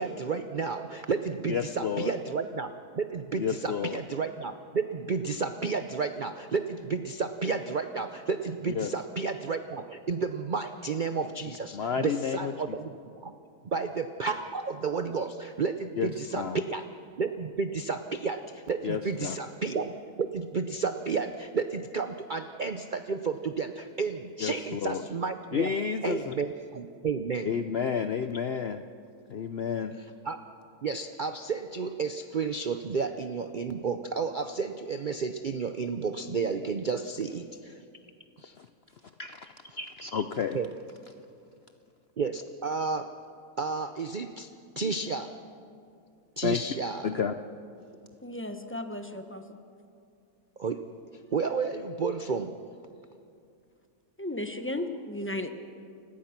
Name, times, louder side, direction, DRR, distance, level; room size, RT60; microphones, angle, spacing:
voice 1, 0.0-12.9 13.2-13.3 13.6-16.8 17.2-19.9 20.2-25.7 26.0-27.5 30.2-30.4 30.8-37.8 38.4-38.5 40.5-40.7 42.2-43.2 43.6-44.5 44.8-45.3 46.4-47.1 50.6-50.9 51.1-52.5, right 4 dB, 50° right, 9 dB, 0.6 m, -32 dB
voice 2, 1.5-2.1 3.3-4.0 8.8-8.9 11.7-12.8 16.0-16.1 16.4-16.6 18.8-19.4 24.4-25.0 25.5-26.3 27.4-28.8 29.3-30.0 38.6-38.7 39.2-40.6 46.4-46.6 47.0-47.3, left 7 dB, 60° left, 9 dB, 0.7 m, -31 dB
voice 3, 48.2-49.6 54.2-55.5, left 1 dB, 10° left, 7 dB, 0.9 m, -35 dB
29.5 x 17.0 x 5.9 m, 2.5 s
omnidirectional pair, 1.7 m